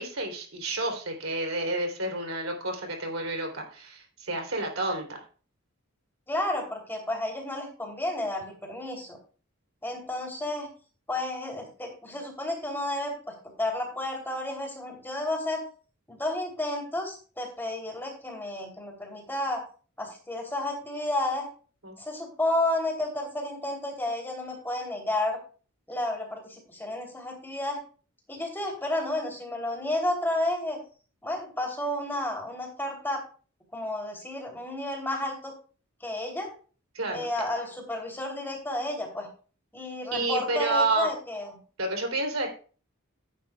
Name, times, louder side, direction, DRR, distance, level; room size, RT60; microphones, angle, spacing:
voice 1, 0.0-5.2 21.8-22.0 36.9-37.3 40.1-41.1 41.8-42.5, right 2 dB, 75° right, 3 dB, 3.2 m, -30 dB
voice 2, 6.3-9.2 9.8-10.7 11.1-15.6 16.1-19.6 20.0-21.5 22.0-25.4 25.9-27.8 28.3-30.8 31.2-33.2 33.7-35.5 36.0-36.5 37.1-39.3 39.7-41.6, left 1 dB, 10° left, 1 dB, 3.1 m, -31 dB
15.0 x 10.0 x 2.3 m, 0.39 s
head